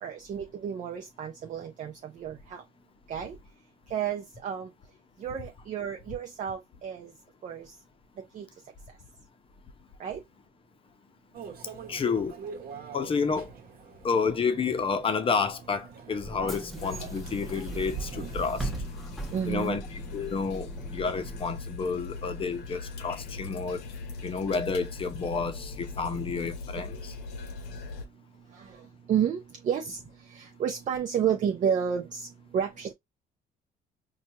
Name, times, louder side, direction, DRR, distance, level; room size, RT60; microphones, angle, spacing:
voice 1, 0.0-2.6 3.1-3.4 3.9-4.7 5.2-7.1 7.4-7.7 8.3-8.5 10.0-10.2 19.3-19.8 28.6-28.7 29.1-30.0 30.3-32.3 32.5-32.9, right 8 dB, 45° right, 0.6 m, -31 dB
Microwave oven, 11.3-18.8, right 4 dB, 60° right, 1.1 m, -41 dB
voice 2, 11.9-12.4 12.9-13.5 14.0-18.7 19.5-23.8 24.2-27.1, left 5 dB, 30° left, 0.7 m, -30 dB
Bus / Engine, 16.3-21.4, right 1 dB, ahead, 0.8 m, -41 dB
sound 1, 16.8-28.1, left 4 dB, 85° left, 0.8 m, -41 dB
4.4 x 2.3 x 2.7 m
cardioid pair, 110°, 17 cm